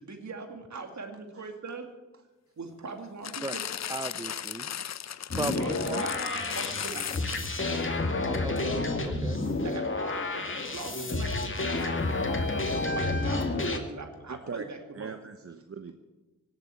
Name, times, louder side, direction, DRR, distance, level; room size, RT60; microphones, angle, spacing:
voice 1, 0.0-1.9 2.6-3.7 5.5-6.1 6.5-7.1 9.6-12.1 12.7-15.1, right 4 dB, 65° right, 5 dB, 2.6 m, -41 dB
sound 1, 3.2-7.7 8.4-8.5, left 9 dB, 60° left, 0.6 m, -36 dB
voice 2, 3.9-4.7 5.4-6.0 8.2-9.4, right 2 dB, 15° right, 13 dB, 0.6 m, -36 dB
sound 2, 5.3-13.8, left 2 dB, 40° left, 2.3 m, -30 dB
voice 3, 14.3-14.7 14.9-15.9, right 5 dB, 45° right, 8 dB, 1.0 m, -41 dB
17.5 x 8.1 x 9.5 m, 1.1 s
cardioid pair, 50°, 31 cm